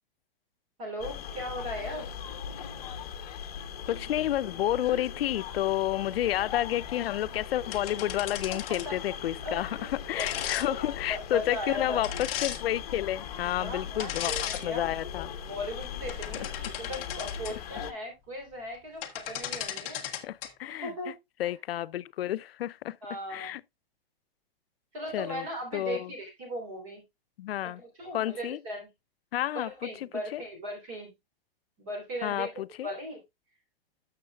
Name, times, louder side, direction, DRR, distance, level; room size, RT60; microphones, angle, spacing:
voice 1, 0.8-2.1 8.7-9.9 10.2-10.3 10.6-10.8 11.1-12.1 13.6-14.9 15.4-16.5 16.8-20.1 20.8-21.1 21.4-21.5 23.0-23.5 24.9-27.0 27.6-28.9 29.5-31.1 31.8-32.5 32.8-33.2, equal, 35° right, 3.5 m, -38 dB
sound 1, 1.0-17.9, left 8 dB, 40° left, 1.1 m, -39 dB
voice 2, 3.9-9.7 10.1-14.3 14.6-15.3 16.4-16.5 20.2-20.9 21.4-23.0 23.3-23.6 25.1-25.5 25.7-26.1 27.4-27.8 28.1-28.6 29.3-30.4 32.2-32.9, left 13 dB, 80° left, 0.5 m, -30 dB
sound 2, 7.7-9.0 10.2-10.7 12.0-12.6 14.0-14.6 15.1-15.3 15.9-17.5 18.7-18.8 19.0-20.5, left 10 dB, 15° left, 0.7 m, -36 dB
13.5 x 6.5 x 2.3 m
hypercardioid pair, 180°, 29 cm